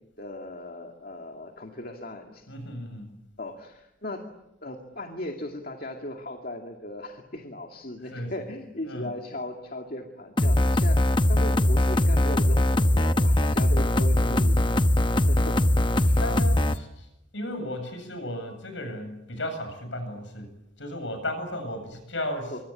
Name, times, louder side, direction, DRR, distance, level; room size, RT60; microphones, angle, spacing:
voice 1, 0.2-2.4 3.4-4.2 4.6-14.6 15.0-15.6 15.9-16.2 22.5-22.6, left 1 dB, 45° left, 3 dB, 2.4 m, -37 dB
voice 2, 2.5-3.1 8.0-8.4 8.8-9.1 14.2-14.4 16.2-17.1 17.3-20.5 20.8-22.6, left 1 dB, 65° left, 8 dB, 7.8 m, -35 dB
sound 1, 10.4-16.8, left 1 dB, 25° left, 0.9 m, -21 dB
25.0 x 25.0 x 8.6 m, 0.87 s
head